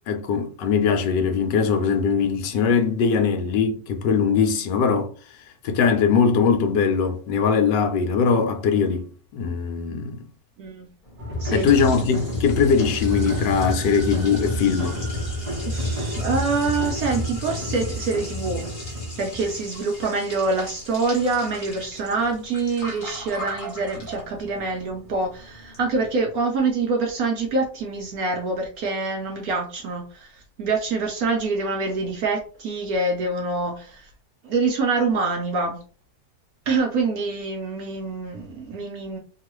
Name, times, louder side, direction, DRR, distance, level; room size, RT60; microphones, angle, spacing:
voice 1, 0.1-5.1 5.6-10.3 11.5-15.0, left 6 dB, 75° left, 1.2 m, -21 dB
Liquid, 11.0-26.2, equal, 35° left, 0.9 m, -40 dB
sound 1, 11.2-19.7, left 1 dB, 30° right, 0.6 m, -29 dB
voice 2, 11.4-12.4 15.7-18.7 19.2-34.1 34.4-35.8 36.7-39.2, right 3 dB, 65° right, 0.9 m, -26 dB
2.9 x 2.3 x 3.0 m
omnidirectional pair, 2.0 m